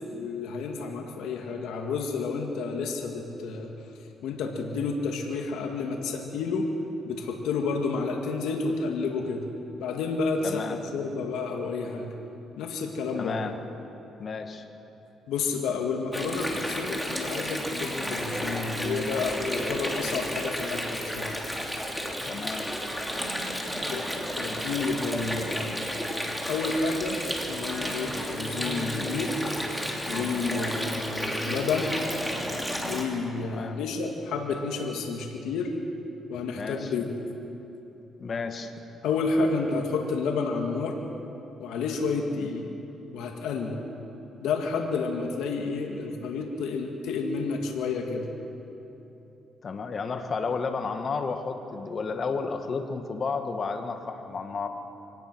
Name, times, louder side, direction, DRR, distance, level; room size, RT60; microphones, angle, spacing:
voice 1, 0.1-3.7 4.2-6.7 7.0-9.5 9.8-12.1 12.6-13.4 15.3-21.4 23.9-24.0 24.4-26.0 26.5-29.4 30.1-32.0 32.8-35.7 36.3-37.1 39.0-41.0 41.6-42.7 43.1-43.8 44.4-48.3, left 4 dB, 85° left, 2 dB, 2.0 m, -30 dB
voice 2, 10.4-10.8 13.1-13.6 14.2-14.7 22.2-22.7 33.4-33.8 36.5-36.9 38.2-38.7 49.6-54.7, left 4 dB, 45° left, 6 dB, 1.8 m, -32 dB
Water, 16.1-33.0, equal, ahead, 3.2 m, -32 dB
24.5 x 18.5 x 6.2 m, 3.0 s
cardioid pair, 90°, 0 cm